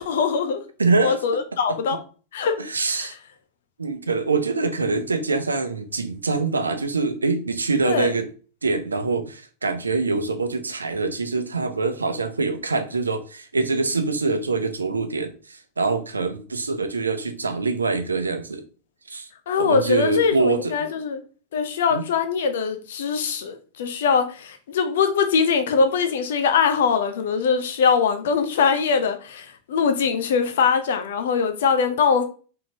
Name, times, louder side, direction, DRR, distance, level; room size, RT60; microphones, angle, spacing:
voice 1, 0.0-0.6 1.0-2.0 2.3-2.5 3.0-3.1 7.8-8.1 19.5-21.2 21.5-32.2, left 6 dB, 60° left, 0.7 m, -22 dB
voice 2, 0.8-1.2 1.7-1.8 2.6-3.2 3.8-8.3 8.6-18.6 19.1-19.3 19.6-20.9 21.9-22.0, right 3 dB, 75° right, 0.6 m, -24 dB
4.3 x 3.7 x 2.8 m
figure-of-eight pair, 90°, 0 cm